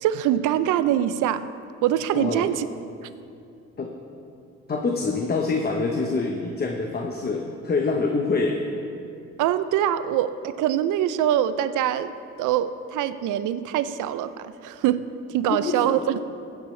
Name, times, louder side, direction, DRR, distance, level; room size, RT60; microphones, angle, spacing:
voice 1, 0.0-1.5 1.8-2.7 9.4-12.1 12.4-15.0 15.3-16.2, right 11 dB, 85° right, 13 dB, 0.5 m, -24 dB
voice 2, 2.1-2.5 3.8-3.9 4.7-8.6 15.5-16.0, left 3 dB, 30° left, 1 dB, 0.9 m, -25 dB
15.5 x 8.3 x 3.2 m, 2.5 s
cardioid pair, 90°, 30 cm